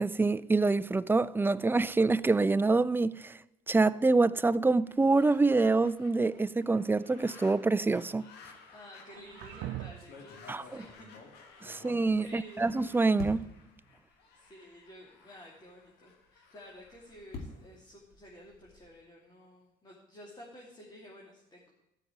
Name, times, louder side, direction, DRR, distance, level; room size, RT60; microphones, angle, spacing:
voice 1, 0.0-3.4 3.7-8.2 10.5-10.6 11.6-13.4, right 3 dB, 10° right, 0.4 m, -26 dB
sound 1, 4.8-18.0, left 5 dB, 85° left, 1.9 m, -57 dB
sound 2, 6.7-7.6 9.0-10.2, right 15 dB, 75° right, 0.5 m, -43 dB
voice 2, 8.7-11.1 11.6-12.7 14.0-21.7, left 1 dB, 25° left, 2.7 m, -52 dB
sound 3, 9.1-9.4 10.0-12.7 13.2-13.7 14.5-14.6 14.9-15.0 16.6-18.9, left 3 dB, 65° left, 2.9 m, -47 dB
13.0 x 6.0 x 9.4 m
cardioid pair, 110°, 17 cm